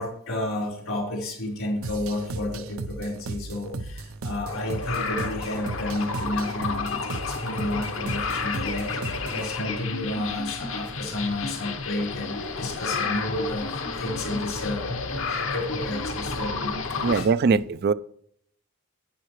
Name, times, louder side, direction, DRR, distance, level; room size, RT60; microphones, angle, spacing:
voice 1, 0.0-17.6, left 1 dB, 80° left, -1 dB, 4.1 m, -32 dB
sound 1, 1.8-9.5, right 2 dB, 85° right, 0.7 m, -36 dB
sound 2, 4.4-17.2, left 4 dB, 65° left, 1.0 m, -31 dB
voice 2, 17.0-17.9, right 5 dB, 50° right, 16 dB, 0.3 m, -21 dB
11.5 x 9.8 x 3.1 m, 0.66 s
head